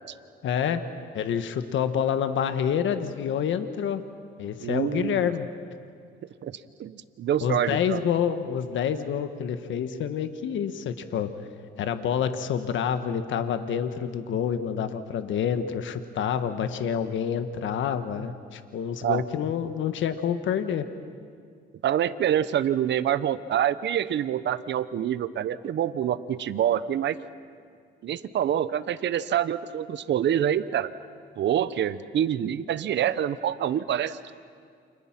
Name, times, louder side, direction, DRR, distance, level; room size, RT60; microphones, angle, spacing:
voice 1, 0.4-0.8 1.1-4.0 4.4-5.5 7.4-11.3 11.8-20.9, left 8 dB, 75° left, 9 dB, 1.4 m, -27 dB
voice 2, 4.6-5.3 6.4-8.0 19.0-19.2 21.8-27.2 28.0-30.9 31.4-34.2, right 10 dB, 65° right, 14 dB, 1.0 m, -26 dB
29.5 x 26.5 x 6.0 m, 2.2 s
cardioid pair, 90°, 20 cm